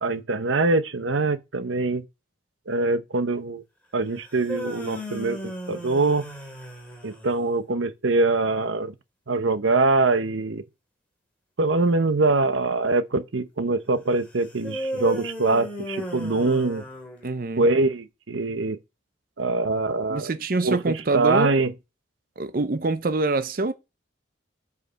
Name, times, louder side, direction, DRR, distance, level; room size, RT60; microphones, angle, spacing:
voice 1, 0.0-2.0 2.7-3.6 3.9-6.2 7.0-8.9 9.3-10.6 11.6-16.8 17.6-18.8 19.4-20.3 20.6-20.8 21.1-21.7, right 3 dB, 80° right, 0.9 m, -23 dB
sound 1, 4.2-7.5 14.6-17.6, left 1 dB, 5° left, 2.7 m, -34 dB
voice 2, 17.2-17.7 20.1-21.6 22.4-23.7, right 2 dB, 45° right, 0.6 m, -25 dB
8.1 x 4.8 x 6.3 m
head